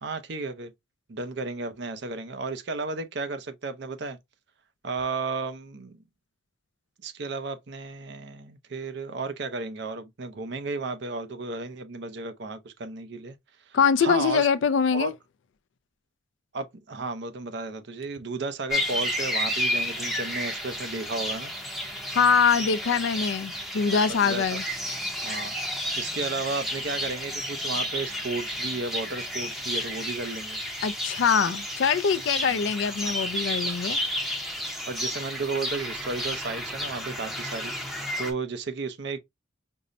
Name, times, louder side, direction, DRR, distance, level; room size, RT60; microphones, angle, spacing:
voice 1, 0.0-0.7 1.1-4.2 4.8-6.0 7.0-13.4 13.7-14.5 14.9-15.1 16.5-21.5 24.1-24.6 25.2-30.6 32.5-32.6 34.9-39.2, right 3 dB, 60° right, 0.6 m, -33 dB
voice 2, 13.7-15.1 22.1-24.6 30.8-34.0, left 6 dB, 70° left, 0.4 m, -23 dB
sound 1, 18.7-38.3, equal, ahead, 0.7 m, -32 dB
5.3 x 2.1 x 2.5 m
head